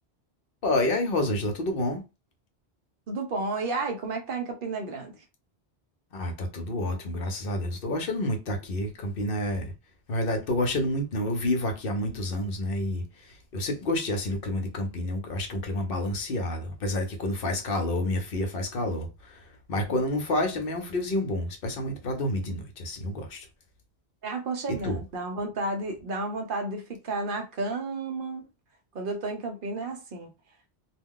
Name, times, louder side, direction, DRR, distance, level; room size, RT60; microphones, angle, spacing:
voice 1, 0.6-2.0 6.1-9.7 10.1-23.5 24.8-25.0, left 1 dB, 60° left, 0.8 m, -29 dB
voice 2, 3.1-5.2 24.2-28.4 28.9-30.3, right 3 dB, 60° right, 0.7 m, -32 dB
2.3 x 2.2 x 3.6 m
omnidirectional pair, 1.1 m